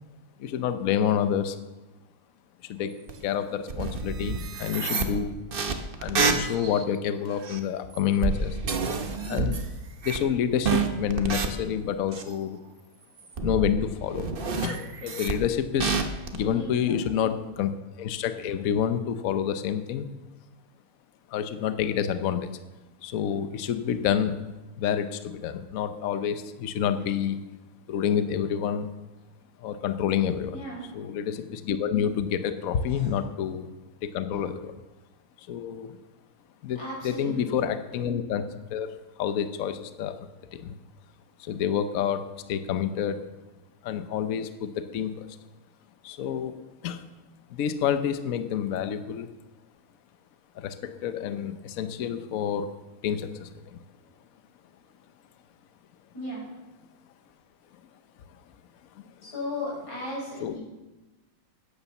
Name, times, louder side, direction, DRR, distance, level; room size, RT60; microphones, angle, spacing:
voice 1, 0.4-1.6 2.6-2.9 3.2-5.3 6.0-8.6 9.3-9.6 10.0-12.6 13.4-14.3 14.6-16.0 16.3-17.7 18.0-20.1 21.3-22.5 23.0-24.4 24.8-27.4 27.9-28.9 29.6-30.6 30.9-33.7 34.0-34.7 35.4-36.0 36.6-38.4 38.7-40.2 40.5-40.7 41.4-43.2 43.8-45.4 46.0-46.6 46.8-47.0 47.5-49.3 50.6-52.7 53.0-53.8 60.4-60.6, left 8 dB, 80° left, 10 dB, 0.7 m, -28 dB
sound 1, 3.1-3.2 3.7-6.8 7.4-7.6 7.9-9.6 10.0-10.4 10.6-11.5 12.1-12.3 13.2-13.8 14.1-15.3 15.8-16.4, right 4 dB, 65° right, 0.5 m, -28 dB
voice 2, 16.5-17.3 30.5-30.9 32.9-33.1 36.8-37.5 56.1-56.4 59.2-60.6, left 1 dB, 45° left, -5 dB, 6.5 m, -36 dB
11.0 x 10.0 x 7.0 m, 1.1 s
omnidirectional pair, 2.4 m